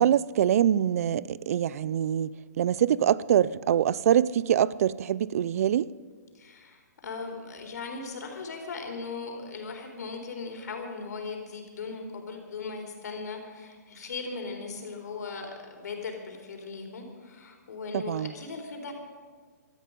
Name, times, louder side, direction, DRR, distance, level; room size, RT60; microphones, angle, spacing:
voice 1, 0.0-5.9 17.9-18.3, right 10 dB, 55° right, 0.5 m, -24 dB
voice 2, 6.3-18.9, left 4 dB, 70° left, 4.0 m, -38 dB
17.0 x 13.5 x 5.3 m
hypercardioid pair, 145°, 10 cm